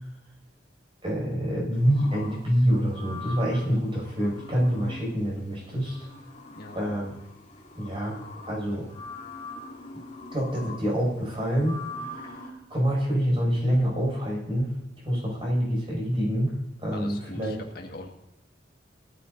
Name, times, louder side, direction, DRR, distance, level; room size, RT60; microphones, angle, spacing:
voice 1, 1.0-6.1 6.7-7.1 7.7-8.2 8.5-8.9 10.3-14.7 15.0-16.5 16.8-17.6, equal, 30° right, -3 dB, 6.2 m, -26 dB
sound 1, 1.7-12.5, left 1 dB, 40° left, 3.0 m, -43 dB
voice 2, 6.6-6.9 16.9-18.1, left 1 dB, 55° left, 1 dB, 1.9 m, -41 dB
18.5 x 14.0 x 2.7 m, 0.90 s
head